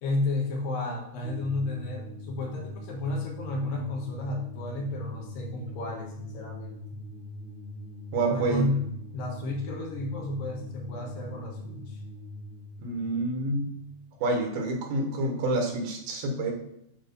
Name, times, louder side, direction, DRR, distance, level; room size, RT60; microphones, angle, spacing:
voice 1, 0.0-7.0 8.3-8.9 9.1-12.0, left 2 dB, 70° left, 0 dB, 2.8 m, -32 dB
sound 1, 1.2-14.4, left 1 dB, 55° right, 1.4 m, -42 dB
voice 2, 8.1-8.7 12.8-13.8 14.2-16.5, right 2 dB, 70° right, 2 dB, 2.8 m, -28 dB
9.1 x 3.1 x 5.2 m, 0.75 s
omnidirectional pair, 4.3 m